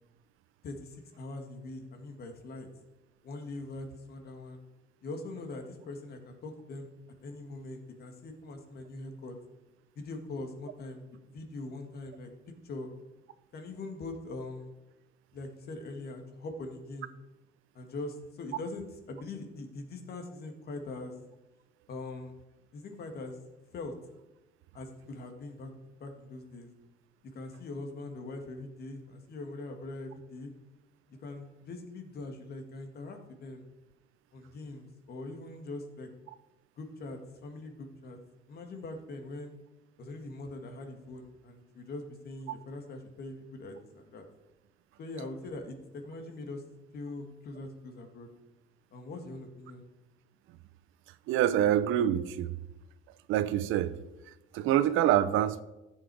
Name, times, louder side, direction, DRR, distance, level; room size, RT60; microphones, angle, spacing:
voice 1, 0.6-2.7 3.2-4.6 5.0-6.9 7.2-9.4 10.0-12.9 13.5-14.7 15.3-17.1 17.7-21.1 21.9-22.3 22.7-23.4 23.7-23.9 24.7-25.7 26.0-26.7 27.3-30.5 31.1-33.6 34.3-36.1 36.8-38.2 38.5-39.5 40.0-44.3 45.0-46.6 46.9-48.3 48.9-49.9, left 2 dB, 50° left, 5 dB, 2.0 m, -42 dB
voice 2, 51.3-52.5 53.3-53.9 54.5-55.6, right 11 dB, 80° right, 14 dB, 0.8 m, -26 dB
14.5 x 7.5 x 4.8 m, 1.0 s
cardioid pair, 135°, 20 cm